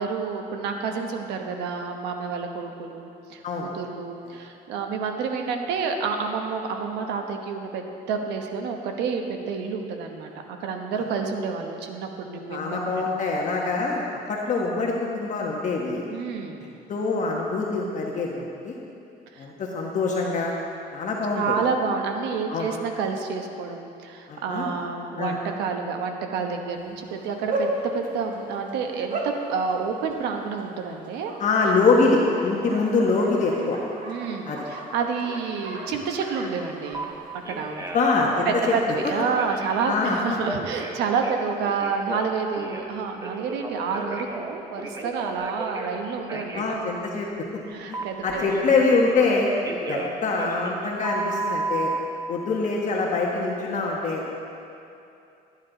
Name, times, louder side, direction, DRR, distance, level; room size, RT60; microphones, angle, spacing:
voice 1, 0.0-13.1 16.1-16.6 19.3-19.5 21.3-31.3 34.0-37.1 37.5-37.9 38.4-46.6 47.7-48.4, right 5 dB, 90° right, 4 dB, 1.1 m, -29 dB
voice 2, 12.5-16.0 16.9-18.7 19.4-20.5 20.9-21.5 22.5-22.7 24.3-24.7 25.2-25.3 31.4-33.8 34.5-34.6 37.9-38.7 39.9-40.2 46.5-47.3 47.9-49.5 49.9-51.9 52.3-54.2, left 3 dB, 45° left, -2 dB, 1.3 m, -24 dB
Bark, 26.8-38.0, right 1 dB, 50° right, 1.7 m, -36 dB
Telephone, 36.9-37.0 37.4-38.1 38.5-39.8 40.4-42.9 43.2-45.9 46.3-46.7 47.9-49.3 49.6-52.0, right 3 dB, 20° right, 1.0 m, -33 dB
13.0 x 9.6 x 3.9 m, 2.7 s
cardioid pair, 110°, 17 cm